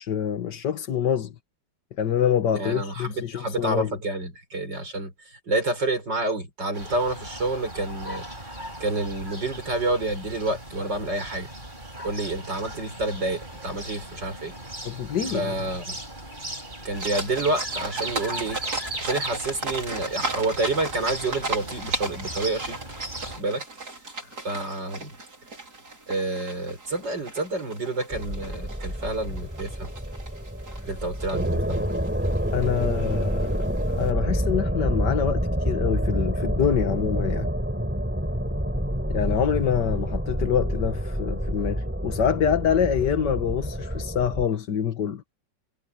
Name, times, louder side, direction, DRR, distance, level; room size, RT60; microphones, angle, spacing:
voice 1, 0.0-1.3 2.0-4.0 14.8-15.5 32.5-37.5 39.1-45.2, left 8 dB, 70° left, 1.9 m, -26 dB
voice 2, 2.5-8.2 8.8-11.5 12.0-14.5 15.3-16.0 16.8-18.6 19.0-22.8 23.2-24.0 24.4-25.1 26.1-29.9 30.9-31.9, right 2 dB, 75° right, 6.8 m, -29 dB
sound 1, 6.7-23.4, right 1 dB, 25° right, 5.7 m, -37 dB
sound 2, 17.0-34.1, right 3 dB, 60° right, 5.0 m, -36 dB
sound 3, 28.1-44.5, equal, 5° right, 4.8 m, -28 dB
omnidirectional pair, 1.9 m